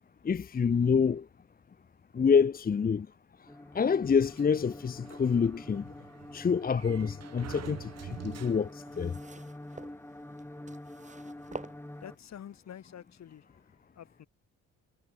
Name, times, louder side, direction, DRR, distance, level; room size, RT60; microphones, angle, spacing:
voice 1, 0.3-1.2 2.2-3.1 3.7-5.8 6.3-7.9 8.2-8.7 9.0-9.1, left 6 dB, 30° left, 0.8 m, -26 dB
sound 1, 3.5-12.2, left 1 dB, 10° left, 6.8 m, -46 dB
Sliding door, 4.3-9.0, right 9 dB, 55° right, 2.4 m, -47 dB
sound 2, 8.1-12.4 13.2-13.3, right 4 dB, 25° right, 2.9 m, -48 dB
voice 2, 12.0-13.4 14.0-14.3, left 9 dB, 60° left, 5.5 m, -47 dB
cardioid pair, 90°, 30 cm